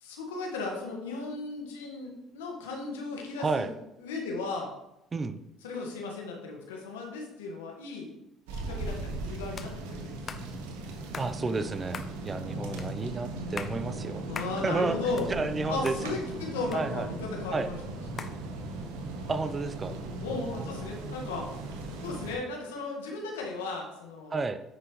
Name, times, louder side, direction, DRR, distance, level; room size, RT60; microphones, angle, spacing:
voice 1, 0.0-3.7 4.0-4.7 5.6-8.1 8.5-10.4 12.4-13.1 14.2-15.3 15.7-17.8 18.1-18.3 20.0-21.5 22.0-24.5, left 3 dB, 85° left, 1 dB, 1.5 m, -36 dB
voice 2, 3.4-3.7 5.1-5.4 11.1-14.2 14.6-15.0 15.3-15.9 16.7-17.1 17.5-17.7 19.3-19.9 24.3-24.6, right 3 dB, 30° right, 11 dB, 0.6 m, -31 dB
sound 1, 8.5-22.4, right 2 dB, 80° right, 1.1 m, -38 dB
sound 2, 9.6-9.7 10.3-10.5 11.1-11.3 11.9-12.1 12.8-12.9 13.4-13.8 14.3-14.6 15.0-15.6 15.9-16.0 16.7-17.3 18.2-18.4, left 6 dB, 45° left, 0.7 m, -40 dB
9.6 x 6.1 x 3.1 m, 0.89 s
hypercardioid pair, 60°, 0 cm